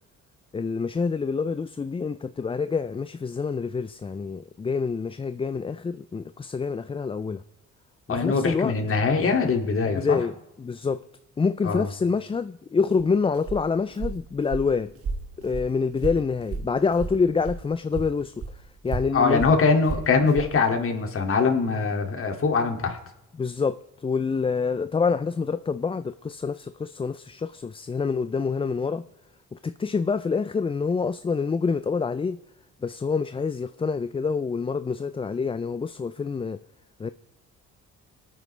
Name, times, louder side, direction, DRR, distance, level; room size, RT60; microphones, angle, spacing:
voice 1, 0.5-7.4 8.1-8.8 9.9-11.1 11.4-14.9 15.4-19.4 23.3-29.1 29.5-32.4 32.8-36.6 37.0-37.1, left 5 dB, 20° left, 0.4 m, -27 dB
voice 2, 8.1-10.2 11.6-11.8 19.1-23.0, left 4 dB, 45° left, 2.4 m, -22 dB
Walk footsteps, 12.9-17.6 17.9-20.5, right 4 dB, 50° right, 2.1 m, -34 dB
27.0 x 9.4 x 3.3 m
cardioid pair, 90°, 30 cm